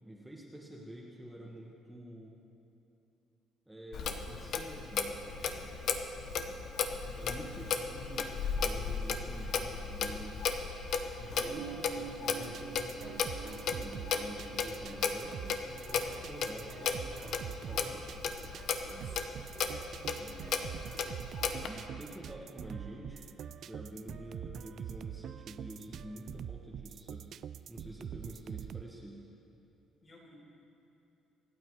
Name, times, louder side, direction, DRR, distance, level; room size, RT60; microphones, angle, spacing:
voice 1, 0.0-2.3 3.7-5.3 6.2-6.5 7.2-10.4 11.1-18.1 20.0-20.3 21.6-23.3 23.7-27.3 27.7-29.2, right 1 dB, 5° right, -2 dB, 1.4 m, -48 dB
Clock, 3.9-21.7, left 6 dB, 60° left, 1.0 m, -35 dB
voice 2, 6.1-6.5 7.0-7.3 8.9-9.3 18.9-19.3 20.0-20.5 30.0-30.3, left 1 dB, 35° left, -2 dB, 4.0 m, -56 dB
sound 1, 11.4-16.4 17.2-17.3 17.6-17.7, right 8 dB, 80° right, 2.1 m, -47 dB
sound 2, 12.4-28.8, right 9 dB, 60° right, 0.4 m, -45 dB
25.0 x 8.8 x 4.8 m, 2.9 s
cardioid pair, 120°, 0 cm